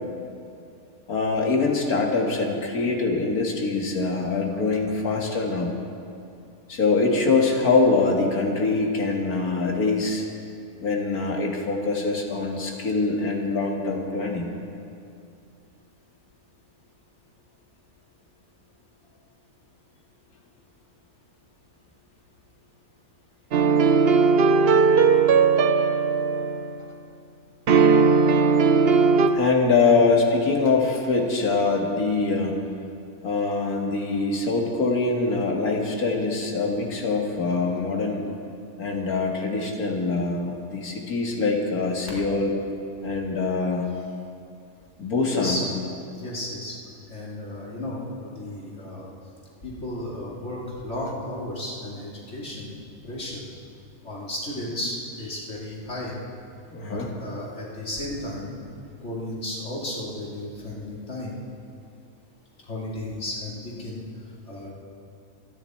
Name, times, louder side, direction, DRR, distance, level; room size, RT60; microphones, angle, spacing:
voice 1, 1.1-5.7 6.7-10.2 10.8-14.5 24.5-24.6 29.3-32.5 33.2-38.2 38.8-42.5 43.0-43.9 45.0-45.7 56.7-57.1, left 3 dB, 85° left, 0 dB, 2.3 m, -24 dB
modes scales dm, 23.5-26.8 27.7-29.3, right 5 dB, 50° right, 0.9 m, -18 dB
voice 2, 45.3-45.7 46.1-46.8 47.1-49.1 49.6-52.7 53.0-53.4 54.0-56.1 56.9-58.6 59.0-61.4 62.7-64.0 64.5-64.7, left 1 dB, 50° left, -5 dB, 3.3 m, -33 dB
28.0 x 10.5 x 4.5 m, 2.5 s
omnidirectional pair, 1.5 m